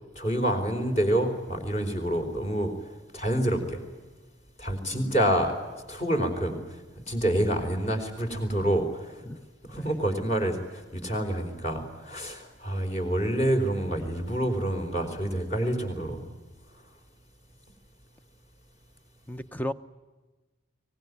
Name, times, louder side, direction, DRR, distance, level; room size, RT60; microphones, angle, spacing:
voice 1, 0.2-2.7 3.1-3.8 4.6-5.5 5.9-6.6 7.1-9.1 9.7-16.3, right 1 dB, 35° left, 4.3 m, -27 dB
voice 2, 4.9-5.3 9.2-9.5 9.7-10.0 19.3-19.7, left 1 dB, 10° left, 0.7 m, -36 dB
23.5 x 19.5 x 9.6 m
head